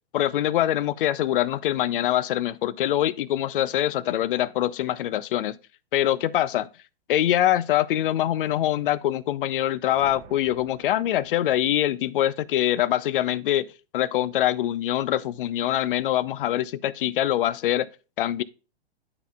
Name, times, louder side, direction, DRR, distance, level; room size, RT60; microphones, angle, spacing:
voice 1, 0.1-5.6 5.9-6.7 7.1-13.7 13.9-17.9 18.2-18.4, left 12 dB, 60° left, 0.5 m, -24 dB
sound 1, 9.5-12.1, right 8 dB, 30° right, 0.7 m, -50 dB
11.0 x 3.8 x 2.3 m
hypercardioid pair, 115°, 31 cm